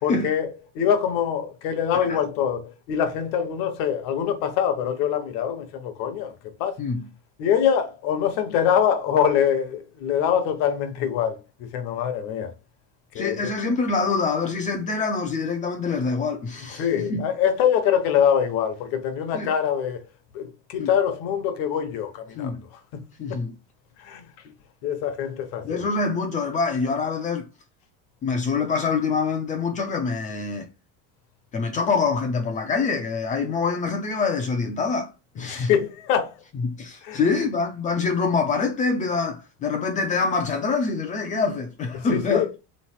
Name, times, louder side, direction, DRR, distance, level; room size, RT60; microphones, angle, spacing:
voice 1, 0.0-6.3 6.6-6.8 7.4-12.5 13.1-13.5 16.8-20.0 20.3-23.4 24.0-24.2 24.8-25.9 35.4-36.3 37.0-37.2 41.9-42.5, left 8 dB, 60° left, 1.0 m, -24 dB
voice 2, 13.1-17.3 19.3-19.5 20.8-20.9 22.3-22.6 23.2-23.5 25.6-27.5 28.2-30.7 31.5-35.1 35.3-35.7 36.5-42.5, left 4 dB, 20° left, 0.4 m, -25 dB
4.0 x 3.1 x 4.2 m
cardioid pair, 180°, 36 cm